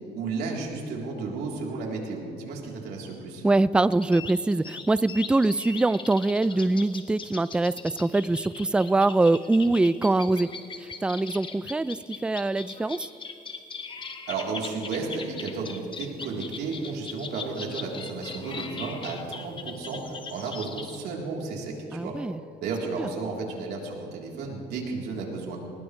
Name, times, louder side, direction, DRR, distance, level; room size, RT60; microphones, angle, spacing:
voice 1, 0.1-3.4 14.3-22.2 22.6-25.6, right 4 dB, 75° right, -1 dB, 3.6 m, -33 dB
voice 2, 3.4-10.5 11.0-13.1 21.9-22.4 23.0-23.1, right 2 dB, 5° right, 17 dB, 0.3 m, -23 dB
sound 1, 3.8-21.0, left 5 dB, 30° left, 1.3 m, -40 dB
20.5 x 20.0 x 3.3 m, 2.9 s
cardioid pair, 110°, 17 cm